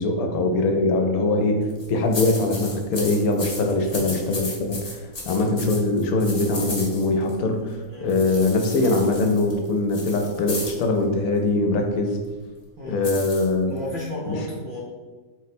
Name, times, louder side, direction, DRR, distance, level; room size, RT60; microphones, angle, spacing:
voice 1, 0.0-12.2 12.8-13.7 14.3-14.4, left 2 dB, 75° left, 4 dB, 1.0 m, -22 dB
sound 1, 1.6-7.3 8.1-10.8 13.0-14.1, left 2 dB, 35° left, 0.7 m, -34 dB
voice 2, 3.8-4.4 7.9-8.2 12.8-13.1 13.7-14.8, left 1 dB, 60° right, -4 dB, 0.5 m, -34 dB
4.3 x 2.1 x 4.1 m, 1.3 s
omnidirectional pair, 1.6 m